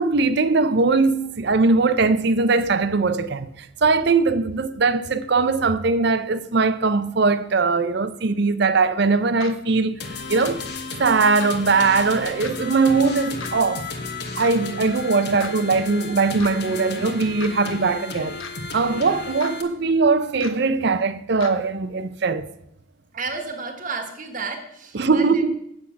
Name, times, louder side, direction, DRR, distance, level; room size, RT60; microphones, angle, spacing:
voice 1, 0.0-10.0 10.3-10.6 11.0-13.9 14.4-18.4 18.7-22.5 24.9-25.6, right 4 dB, 55° right, 0.6 m, -20 dB
sound 1, 9.4-9.5 10.4-10.5 11.4-11.5 12.4-12.5 13.4-13.5 14.4-14.5 15.4-15.5 16.4-16.5 17.4-17.5 18.4-18.5 19.4-19.5 20.4-20.5 21.4-21.5, left 6 dB, 85° left, 1.1 m, -36 dB
sound 2, 10.0-19.6, left 4 dB, 50° left, 1.1 m, -33 dB
voice 2, 23.1-25.4, right 4 dB, 40° right, 1.3 m, -32 dB
8.6 x 7.2 x 5.8 m
head